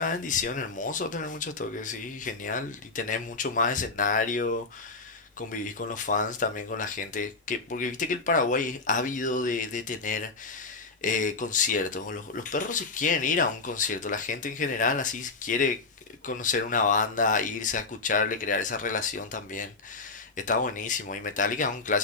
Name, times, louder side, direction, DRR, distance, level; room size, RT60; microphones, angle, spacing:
voice 1, 0.0-15.8 16.2-22.0, left 4 dB, 45° left, 0.8 m, -28 dB
6.1 x 4.0 x 4.8 m
head